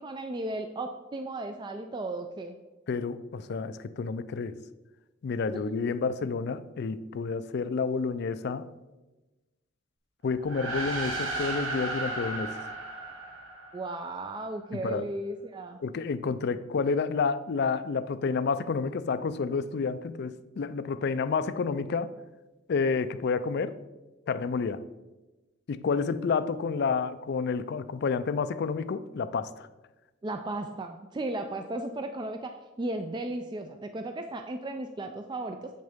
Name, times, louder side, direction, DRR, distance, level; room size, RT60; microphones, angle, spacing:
voice 1, 0.0-2.5 13.7-15.8 30.2-35.7, right 2 dB, 20° right, 6 dB, 0.3 m, -35 dB
voice 2, 2.9-4.6 5.2-8.7 10.2-12.6 14.7-15.0 15.8-22.1 22.7-23.8 24.3-24.8 25.7-29.7, left 5 dB, 55° left, 14 dB, 0.4 m, -29 dB
sound 1, 10.4-14.1, right 2 dB, 90° right, 1.5 m, -34 dB
8.0 x 6.4 x 3.5 m, 1.1 s
head